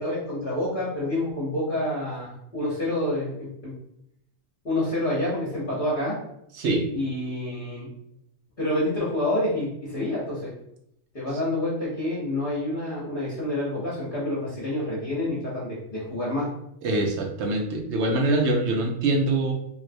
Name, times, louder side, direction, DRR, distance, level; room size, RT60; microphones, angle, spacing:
voice 1, 0.0-3.7 4.6-6.2 6.9-7.9 8.6-10.5 11.1-16.5, left 1 dB, 45° left, -8 dB, 1.0 m, -28 dB
voice 2, 6.5-6.9 16.8-19.5, right 2 dB, 65° right, 1 dB, 0.9 m, -24 dB
3.1 x 2.6 x 2.6 m, 0.77 s
omnidirectional pair, 1.3 m